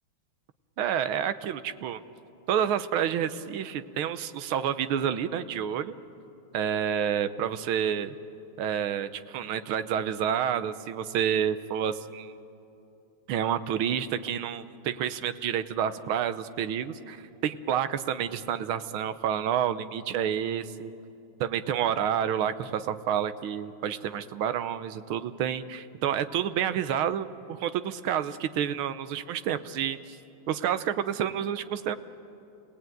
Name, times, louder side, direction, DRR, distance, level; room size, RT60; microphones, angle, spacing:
voice 1, 0.8-2.0 2.5-6.0 6.5-8.2 8.6-12.3 13.3-20.9 21.4-30.2 30.5-32.0, right 9 dB, 80° right, 12 dB, 1.7 m, -29 dB
28.5 x 18.5 x 9.2 m, 2.8 s
omnidirectional pair, 2.3 m